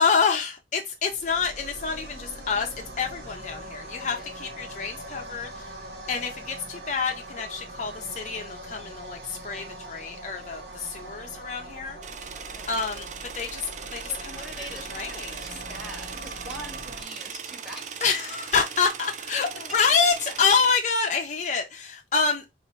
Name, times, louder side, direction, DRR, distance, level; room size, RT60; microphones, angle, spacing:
voice 1, 0.0-5.7 6.1-12.0 12.7-13.1 13.3-14.7 14.9-15.4 18.0-22.5, left 5 dB, 45° left, 0.5 m, -27 dB
sound 1, 1.0-17.0, right 1 dB, 70° right, 1.1 m, -41 dB
sound 2, 12.0-20.7, right 7 dB, 45° right, 0.4 m, -39 dB
voice 2, 12.3-12.8 14.1-18.0 19.4-19.5, right 1 dB, ahead, 1.1 m, -43 dB
4.2 x 2.4 x 4.5 m
head